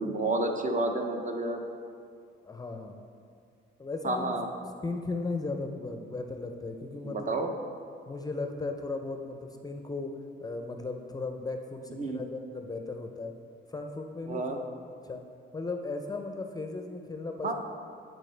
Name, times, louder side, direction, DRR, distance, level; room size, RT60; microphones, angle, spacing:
voice 1, 0.0-1.6 4.0-4.5 7.0-7.5 11.9-12.2 14.3-14.6 17.4-17.5, right 2 dB, 40° right, 4 dB, 0.7 m, -30 dB
voice 2, 2.4-3.0 3.8-4.3 4.8-7.4 8.1-10.1 10.4-13.4 13.7-14.6 15.0-15.2 15.5-17.5, left 3 dB, 20° left, 4 dB, 0.5 m, -36 dB
10.5 x 4.4 x 3.3 m, 2.3 s
cardioid pair, 90°, 20 cm